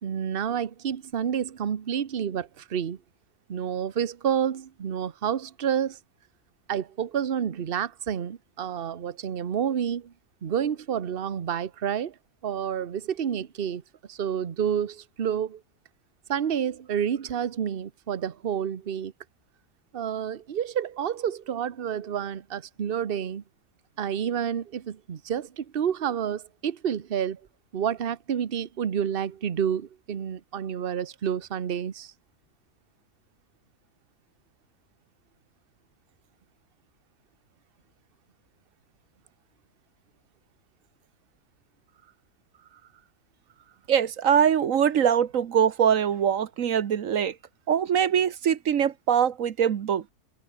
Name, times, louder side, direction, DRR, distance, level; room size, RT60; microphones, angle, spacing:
voice 1, 0.0-3.0 3.5-6.0 6.7-10.1 10.4-12.1 12.4-13.8 14.1-15.6 16.3-19.1 19.9-23.4 24.0-27.4 27.7-32.1, right 8 dB, 40° right, 1.1 m, -29 dB
voice 2, 43.9-47.3 47.7-50.0, right 8 dB, 60° right, 1.2 m, -23 dB
omnidirectional pair, 1.6 m